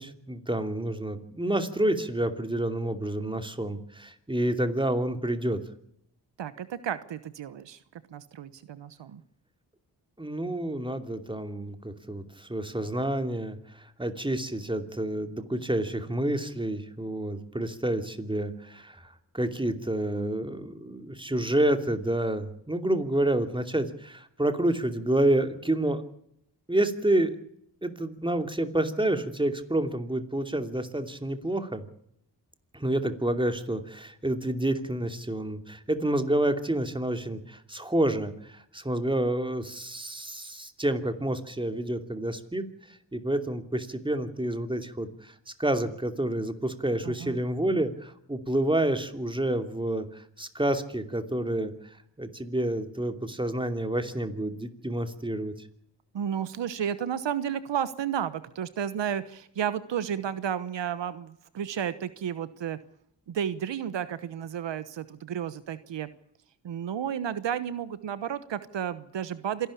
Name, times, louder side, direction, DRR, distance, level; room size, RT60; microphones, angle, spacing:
voice 1, 0.0-5.6 10.2-26.0 26.7-27.4 27.8-31.8 32.7-42.7 43.1-45.3 45.6-51.7 52.2-55.5, right 1 dB, 10° right, 8 dB, 2.7 m, -29 dB
voice 2, 6.4-7.8 8.1-9.2 47.0-47.4 56.1-62.8 63.3-66.1 66.6-69.7, right 9 dB, 80° right, 14 dB, 1.1 m, -32 dB
27.0 x 12.0 x 8.5 m, 0.73 s
cardioid pair, 65°, 43 cm